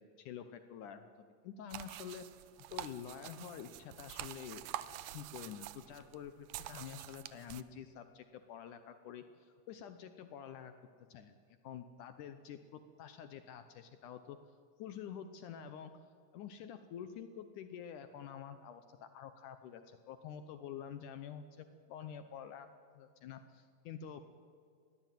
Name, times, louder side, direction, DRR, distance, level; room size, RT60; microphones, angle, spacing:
voice 1, 0.0-2.3 2.7-4.6 5.0-10.7 11.1-11.4 11.6-14.4 14.8-15.9 16.3-22.7 22.9-24.2, left 8 dB, 70° left, 9 dB, 2.1 m, -48 dB
sound 1, 1.7-7.6, right 14 dB, 80° right, 1.8 m, -47 dB
21.0 x 16.5 x 9.2 m, 2.1 s
omnidirectional pair, 4.1 m